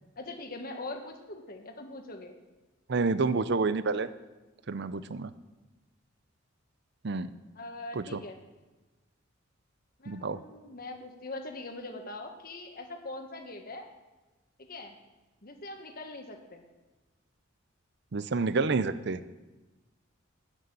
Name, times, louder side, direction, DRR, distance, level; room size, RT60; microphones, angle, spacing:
voice 1, 0.2-2.3 7.5-8.4 10.0-13.9 14.6-14.9 15.4-16.6, left 2 dB, 45° left, 4 dB, 1.5 m, -42 dB
voice 2, 2.9-4.1 4.7-5.3 7.0-7.3 8.0-8.2 10.1-10.4 18.1-19.2, right 4 dB, 55° right, 14 dB, 0.6 m, -29 dB
13.5 x 6.8 x 9.2 m, 1.2 s
head